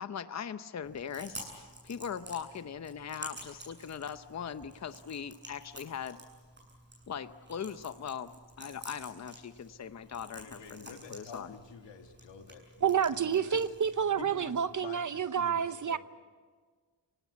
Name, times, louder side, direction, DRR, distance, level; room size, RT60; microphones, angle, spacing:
voice 1, 0.0-6.2 7.1-8.3 8.6-11.5, left 7 dB, 40° left, 0.8 m, -40 dB
Chewing mastication, 0.8-14.8, right 1 dB, 25° right, 7.7 m, -51 dB
voice 2, 10.4-13.8 14.2-16.0, left 5 dB, 85° left, 2.4 m, -49 dB
voice 3, 12.8-16.0, right 8 dB, 45° right, 0.8 m, -29 dB
28.5 x 18.0 x 8.3 m
wide cardioid pair, 130°, 43 cm